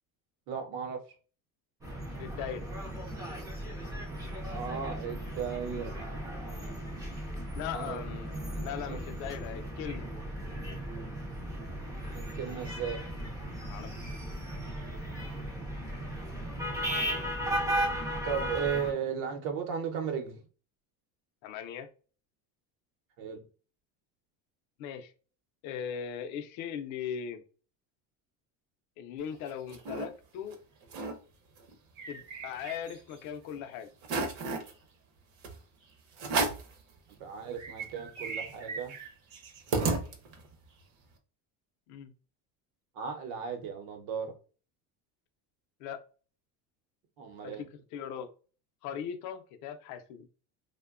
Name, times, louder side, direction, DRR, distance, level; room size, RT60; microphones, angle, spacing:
voice 1, 0.5-1.0 4.5-5.9 7.7-8.0 8.5-9.0 12.3-13.0 18.2-20.4 23.2-23.4 37.2-38.9 42.9-44.3 47.2-47.6, right 7 dB, 90° right, 0.8 m, -35 dB
sound 1, 1.8-18.9, equal, 10° right, 0.3 m, -36 dB
voice 2, 2.2-2.6 7.5-10.1 13.7-13.9 21.4-21.9 24.8-25.1 25.6-27.4 29.0-30.6 32.1-33.9 41.9-42.1 45.8-46.0 47.4-48.3 48.8-50.3, left 8 dB, 50° left, 0.5 m, -39 dB
sound 2, 29.2-30.1 30.5-30.6 30.8-31.2 31.6-33.2 33.6-33.7 34.0-34.7 35.4-35.6 36.2-36.7 37.2-37.3 37.5-40.5, right 4 dB, 50° right, 0.6 m, -34 dB
2.9 x 2.1 x 2.3 m
cardioid pair, 160°, 38 cm